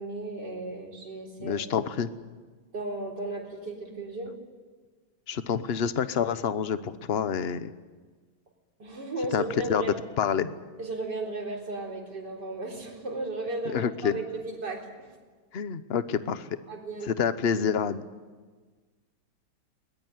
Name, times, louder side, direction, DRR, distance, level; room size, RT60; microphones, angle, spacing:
voice 1, 0.0-1.7 2.7-4.4 8.8-9.9 10.8-15.1 16.7-17.1, right 2 dB, 55° right, 0 dB, 4.6 m, -35 dB
voice 2, 1.4-2.1 5.3-7.7 9.3-9.4 9.7-10.5 13.7-14.2 15.5-16.5 17.0-18.0, left 7 dB, 45° left, 13 dB, 0.8 m, -28 dB
21.5 x 20.5 x 9.5 m, 1.4 s
omnidirectional pair, 2.2 m